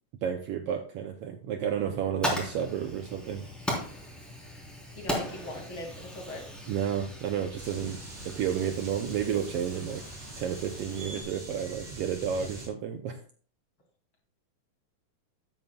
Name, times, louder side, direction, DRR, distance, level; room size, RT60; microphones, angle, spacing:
voice 1, 0.2-3.4 6.7-10.0 10.4-13.2, right 8 dB, 75° right, 6 dB, 1.4 m, -31 dB
Fire, 1.8-11.2, equal, ahead, 3.4 m, -38 dB
voice 2, 5.0-6.5, left 1 dB, 40° left, 0 dB, 3.1 m, -40 dB
sound 1, 7.6-12.7, right 2 dB, 35° right, 4.2 m, -44 dB
13.5 x 9.3 x 2.3 m, 0.41 s
omnidirectional pair, 3.5 m